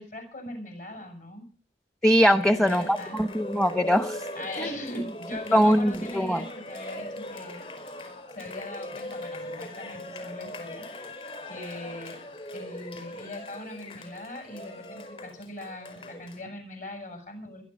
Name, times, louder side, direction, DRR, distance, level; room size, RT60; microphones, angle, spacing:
voice 1, 0.0-1.4 2.3-3.2 4.3-7.7 8.0-12.2 12.5-17.6, left 1 dB, 50° left, 6 dB, 7.7 m, -41 dB
voice 2, 2.0-4.3 4.6-4.8 5.5-6.4, equal, 5° left, 9 dB, 0.9 m, -22 dB
Cheering, 2.5-16.4, left 1 dB, 30° left, 4.8 m, -40 dB
22.0 x 11.5 x 5.4 m, 0.37 s
head